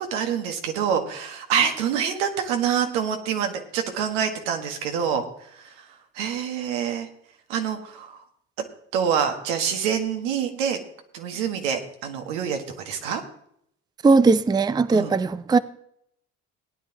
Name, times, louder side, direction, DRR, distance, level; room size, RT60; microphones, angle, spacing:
voice 1, 0.0-5.8 6.1-7.1 7.5-8.2 8.9-10.8 11.1-13.2 14.9-15.1, right 7 dB, 80° right, 1.7 m, -26 dB
voice 2, 14.0-15.6, right 4 dB, 10° right, 0.5 m, -18 dB
18.0 x 9.7 x 3.0 m
hypercardioid pair, 65°, 36 cm